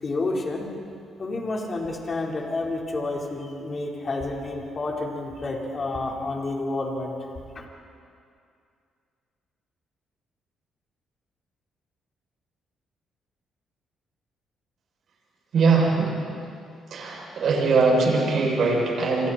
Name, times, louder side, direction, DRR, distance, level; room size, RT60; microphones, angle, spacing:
voice 1, 0.0-0.7 1.2-7.1 7.5-7.6, left 2 dB, 35° left, -1 dB, 4.6 m, -29 dB
voice 2, 15.5-16.1 16.9-19.3, right 4 dB, 60° right, -2 dB, 7.5 m, -21 dB
30.0 x 26.5 x 4.5 m, 2.4 s
cardioid pair, 90°, 0 cm